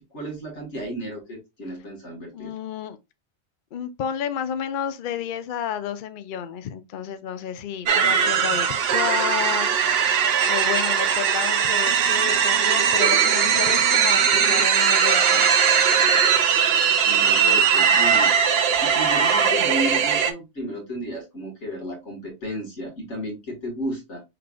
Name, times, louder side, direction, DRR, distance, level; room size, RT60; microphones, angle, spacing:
voice 1, 0.1-2.5 17.0-18.3 18.8-24.2, equal, 80° left, 1.9 m, -33 dB
voice 2, 2.3-3.0 3.7-9.8 10.5-15.5, left 9 dB, 60° left, 0.6 m, -31 dB
sound 1, 7.9-20.3, right 7 dB, 65° right, 0.8 m, -19 dB
5.8 x 3.2 x 2.3 m
omnidirectional pair, 1.2 m